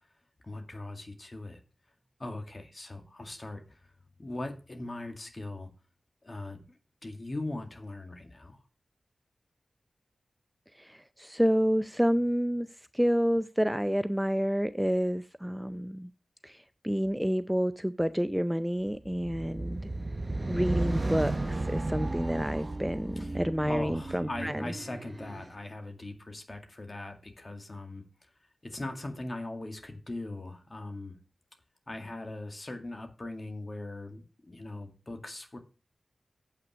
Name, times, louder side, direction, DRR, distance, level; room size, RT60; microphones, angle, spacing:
voice 1, 0.4-1.6 2.2-3.8 4.2-5.7 6.2-8.6 23.2-28.0 28.6-31.2 31.9-35.6, left 2 dB, 40° left, 5 dB, 2.0 m, -40 dB
voice 2, 10.8-12.7 12.9-16.1 16.4-19.8 20.5-24.7, equal, 5° right, 12 dB, 0.5 m, -29 dB
sound 1, 19.0-25.5, right 2 dB, 40° right, 0.8 m, -34 dB
8.3 x 5.9 x 6.2 m, 0.35 s
cardioid pair, 55°, 0 cm